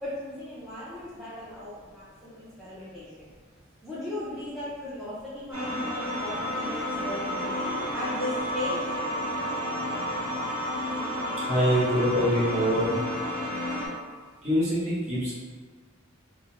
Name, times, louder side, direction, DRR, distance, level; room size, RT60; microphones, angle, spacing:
voice 1, 0.0-3.3 3.8-8.8, left 1 dB, ahead, -12 dB, 0.5 m, -37 dB
sound 1, 5.5-13.9, equal, 85° right, 1.0 m, -31 dB
voice 2, 11.5-12.9 14.4-15.3, equal, 35° right, -9 dB, 0.9 m, -24 dB
2.5 x 2.1 x 2.8 m, 1.5 s
head